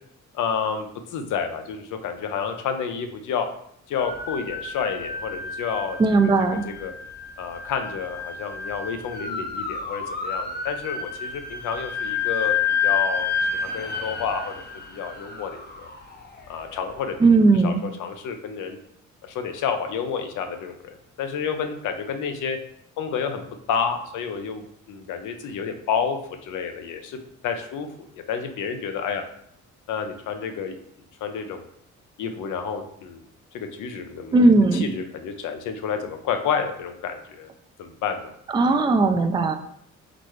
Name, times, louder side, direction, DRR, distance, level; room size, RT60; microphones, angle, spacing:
voice 1, 0.3-3.5 3.9-6.0 6.5-6.9 7.4-15.9 16.5-17.2 17.5-18.8 19.2-22.6 23.0-27.2 27.4-29.2 29.9-30.8 31.2-31.7 32.2-33.3 33.5-34.4 34.7-37.5 37.8-38.3, left 6 dB, 80° left, 7 dB, 0.6 m, -30 dB
sound 1, 4.0-17.0, left 6 dB, 35° left, 0.7 m, -30 dB
voice 2, 6.0-6.6 17.2-17.8 34.3-34.8 38.5-39.5, right 3 dB, 15° right, 7 dB, 0.3 m, -17 dB
4.0 x 3.1 x 3.1 m, 0.69 s
cardioid pair, 90°, 30 cm